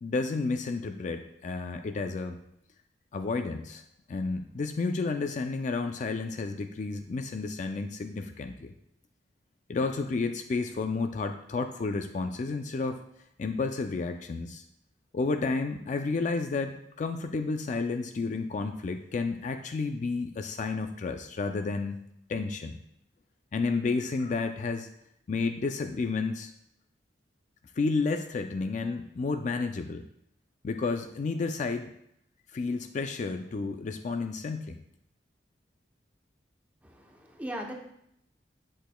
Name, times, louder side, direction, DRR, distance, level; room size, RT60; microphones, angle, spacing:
voice 1, 0.0-2.4 3.1-3.8 4.1-8.7 9.7-13.0 13.4-14.6 15.1-22.0 22.3-22.8 23.5-24.9 25.3-26.5 27.8-30.0 30.6-31.9 32.5-34.8, left 4 dB, 45° left, 7 dB, 0.3 m, -31 dB
voice 2, 36.8-37.7, equal, 10° right, 1 dB, 0.8 m, -38 dB
8.0 x 6.5 x 2.2 m, 0.75 s
head